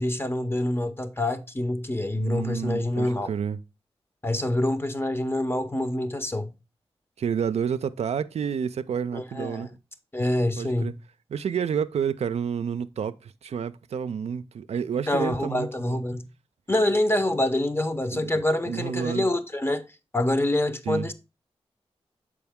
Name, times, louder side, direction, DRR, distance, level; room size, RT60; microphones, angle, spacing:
voice 1, 0.0-3.3 4.2-6.5 9.1-9.7 10.1-10.9 15.1-16.3 16.7-19.8 20.1-21.1, left 1 dB, 20° left, 0.8 m, -26 dB
voice 2, 2.1-3.6 7.2-9.7 10.6-10.9 11.3-16.0 18.1-18.3 18.6-19.3 20.9-21.1, right 7 dB, 80° right, 0.4 m, -29 dB
6.9 x 4.8 x 3.6 m
cardioid pair, 45°, 11 cm